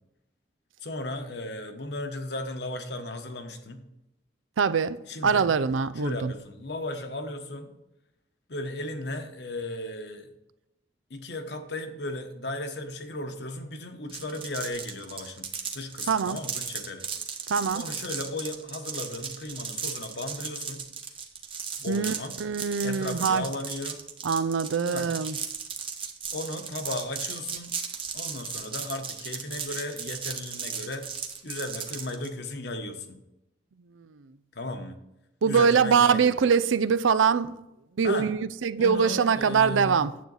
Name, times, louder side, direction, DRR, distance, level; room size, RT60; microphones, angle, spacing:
voice 1, 0.8-3.8 5.1-5.5 6.0-7.7 8.5-10.3 11.1-17.1 17.7-20.9 21.8-22.4 22.8-24.0 24.9-25.1 26.3-27.7 28.1-31.1 31.4-33.2 34.5-35.0 35.4-36.4 38.0-38.3 38.8-40.0, left 2 dB, 60° left, 1.1 m, -35 dB
voice 2, 4.6-6.3 16.1-16.4 17.5-17.8 21.9-22.1 22.4-23.5 24.2-25.4 35.4-37.5 38.0-40.1, right 6 dB, 90° right, 0.5 m, -23 dB
sound 1, 14.1-32.3, right 6 dB, 25° right, 0.9 m, -36 dB
9.4 x 7.8 x 4.1 m
head